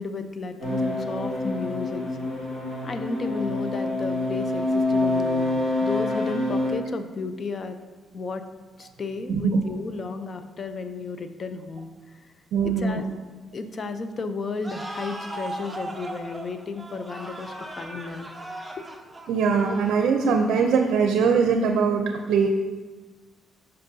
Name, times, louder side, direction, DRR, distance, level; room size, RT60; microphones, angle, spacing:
voice 1, 0.0-2.0 2.8-7.8 8.1-8.4 8.8-12.3 12.6-13.1 13.5-18.3 18.8-18.9, left 4 dB, 45° left, 9 dB, 0.5 m, -33 dB
sound 1, 0.6-6.7, left 2 dB, 70° left, 2.0 m, -26 dB
voice 2, 12.5-13.0 19.3-22.5, right 5 dB, 80° right, 4 dB, 0.5 m, -21 dB
sound 2, 14.6-21.1, right 1 dB, 5° right, 0.8 m, -38 dB
9.0 x 5.5 x 2.7 m, 1.3 s
cardioid pair, 90°, 0 cm